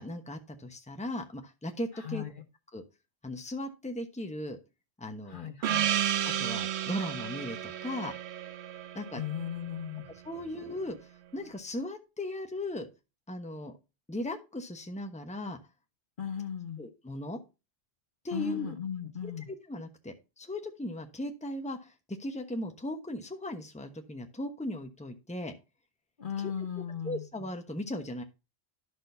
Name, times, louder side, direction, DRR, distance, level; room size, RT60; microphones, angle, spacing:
voice 1, 0.0-2.3 2.7-2.8 3.2-4.6 5.0-5.5 6.4-8.1 8.9-9.2 10.2-11.0 11.3-12.9 13.3-13.7 14.1-15.6 16.8-17.4 18.2-18.7 19.2-21.9 22.2-25.5 26.4-26.5 27.0-28.2, left 1 dB, 5° left, 4 dB, 1.0 m, -37 dB
voice 2, 5.3-5.9 9.1-10.1 16.2-16.8 18.3-19.5 26.2-27.3, left 8 dB, 55° left, 7 dB, 1.1 m, -36 dB
Gong, 5.6-10.4, right 10 dB, 85° right, 0.9 m, -33 dB
12.0 x 6.2 x 2.7 m, 0.28 s
omnidirectional pair, 1.1 m